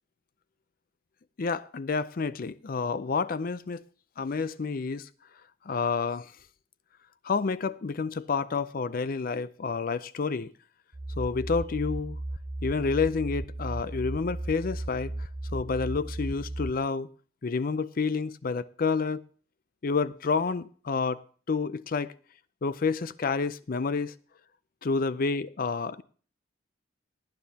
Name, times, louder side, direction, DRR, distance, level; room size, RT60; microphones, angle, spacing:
voice 1, 1.4-3.8 4.2-5.1 5.7-6.3 7.2-10.5 11.2-12.2 12.6-17.1 17.4-19.2 19.8-21.2 21.5-22.1 22.6-24.1 24.8-26.0, left 4 dB, 45° left, 0.5 m, -29 dB
sound 1, 10.9-16.7, right 1 dB, 25° right, 0.4 m, -35 dB
18.5 x 9.9 x 2.8 m
head